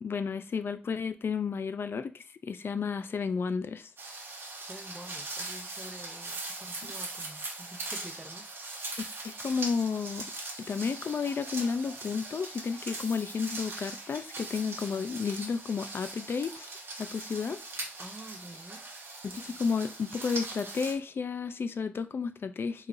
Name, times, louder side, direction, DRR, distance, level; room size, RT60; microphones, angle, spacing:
voice 1, 0.0-3.9 9.2-10.3 10.6-16.7 17.0-17.6 19.2-22.9, left 5 dB, 75° left, 0.4 m, -32 dB
sound 1, 4.0-20.9, right 2 dB, 90° right, 1.0 m, -41 dB
voice 2, 4.7-8.5 18.0-18.9, right 1 dB, 15° right, 0.6 m, -48 dB
4.5 x 3.3 x 2.5 m
wide cardioid pair, 115°, 4 cm